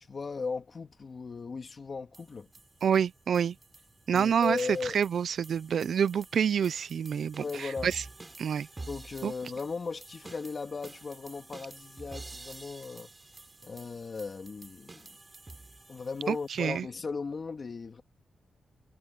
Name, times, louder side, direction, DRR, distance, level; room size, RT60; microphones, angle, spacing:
voice 1, 0.1-2.5 4.1-5.0 7.4-7.9 8.9-13.1 13.6-15.1 15.9-18.0, left 4 dB, 45° left, 2.7 m, -37 dB
sound 1, 2.1-16.7, right 2 dB, 25° right, 4.1 m, -50 dB
voice 2, 2.8-3.5 4.1-4.6 4.9-8.0 8.4-8.7 9.2-9.3 16.3-16.9, right 7 dB, 70° right, 0.5 m, -27 dB
wide cardioid pair, 115°, 0 cm